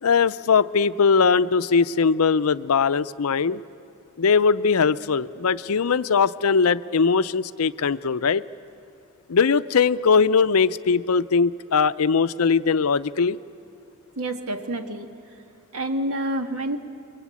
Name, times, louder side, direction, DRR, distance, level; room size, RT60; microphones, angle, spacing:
voice 1, 0.0-3.6 4.2-8.4 9.3-13.4, left 5 dB, 75° left, 14 dB, 0.6 m, -20 dB
voice 2, 14.2-15.1 15.7-16.8, right 1 dB, 70° right, 6 dB, 1.8 m, -28 dB
28.5 x 23.0 x 8.5 m, 2.5 s
head